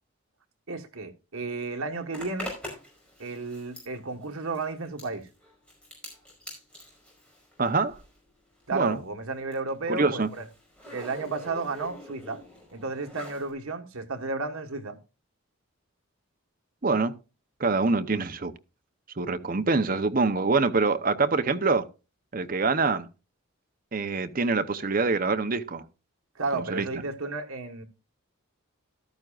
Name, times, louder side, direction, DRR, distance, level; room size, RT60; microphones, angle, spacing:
voice 1, 0.7-2.5 3.2-5.3 8.7-10.4 10.9-12.4 12.7-15.0 26.3-27.8, right 3 dB, 75° right, 1.4 m, -33 dB
Zipper (clothing), 2.1-8.3 8.5-13.5, left 1 dB, 5° left, 5.0 m, -45 dB
voice 2, 7.6-8.0 8.7-9.0 9.9-10.3 16.8-17.1 17.6-18.5 19.2-21.9 22.3-23.1 23.9-25.8 26.5-26.9, right 3 dB, 40° right, 0.7 m, -25 dB
14.0 x 12.5 x 2.4 m
head